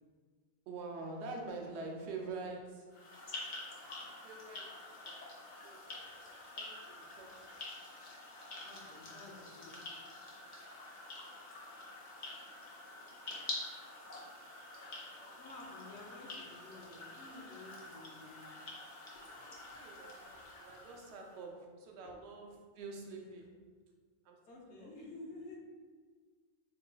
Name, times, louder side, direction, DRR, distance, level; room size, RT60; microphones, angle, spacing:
voice 1, 0.7-2.9 4.2-4.8 5.0-5.3 5.6-7.5 12.5-12.6 12.9-13.1 15.2-15.4 19.4-23.5 24.2-24.4 24.7-24.9, right 3 dB, 70° right, 1 dB, 0.8 m, -47 dB
sound 1, 2.9-21.4, left 2 dB, 50° left, 0.7 m, -48 dB
voice 2, 8.6-9.7 15.4-18.4 19.1-19.2 20.2-20.3 22.0-22.1 24.5-25.6, left 2 dB, 75° left, -2 dB, 1.0 m, -51 dB
2.9 x 2.3 x 3.7 m, 1.5 s
omnidirectional pair, 1.2 m